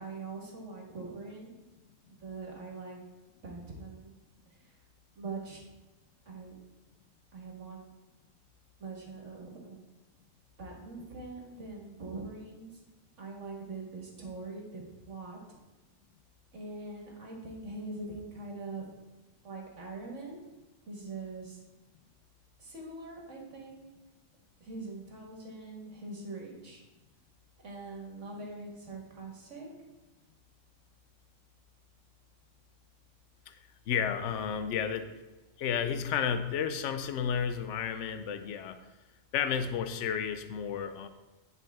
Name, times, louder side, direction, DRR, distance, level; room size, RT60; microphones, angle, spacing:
voice 1, 0.0-1.6 2.1-3.0 3.4-4.1 4.6-4.7 5.2-5.6 6.3-6.6 7.3-7.8 8.8-9.8 10.6-12.8 13.2-15.6 16.5-18.9 19.4-20.4 20.9-21.6 22.6-23.9 24.6-26.8 27.6-29.7, right 3 dB, 65° right, -1 dB, 2.0 m, -43 dB
voice 2, 33.9-35.1 35.6-38.9 39.3-41.1, left 7 dB, 65° left, 10 dB, 0.9 m, -32 dB
10.0 x 5.4 x 3.5 m, 1.1 s
omnidirectional pair, 1.4 m